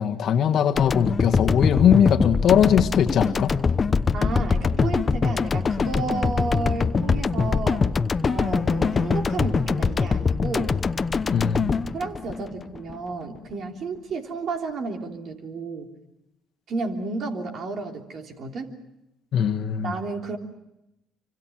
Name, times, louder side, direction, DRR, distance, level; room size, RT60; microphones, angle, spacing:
voice 1, 0.0-3.5 11.3-11.8 19.3-19.9, left 8 dB, 60° left, 6 dB, 1.5 m, -20 dB
sound 1, 0.8-13.0, left 5 dB, 35° left, 0.9 m, -23 dB
voice 2, 4.1-7.8 8.2-10.8 11.9-15.9 16.7-18.7 19.8-20.4, right 3 dB, 60° right, 3 dB, 3.3 m, -32 dB
25.5 x 25.0 x 6.1 m, 0.89 s
supercardioid pair, 75°, 0 cm